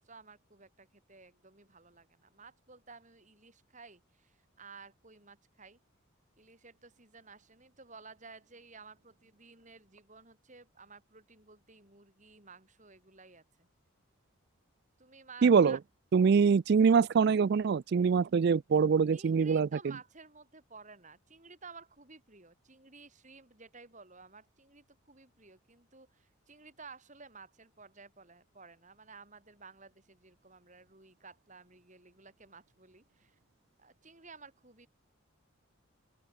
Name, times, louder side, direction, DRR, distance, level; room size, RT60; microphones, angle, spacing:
voice 1, 0.0-5.8 6.4-13.7 15.0-15.8 19.1-33.4 33.8-34.9, right 4 dB, 35° right, 4.6 m, -54 dB
voice 2, 15.4-15.8 16.1-19.7, right 5 dB, 50° right, 0.3 m, -24 dB
open air
head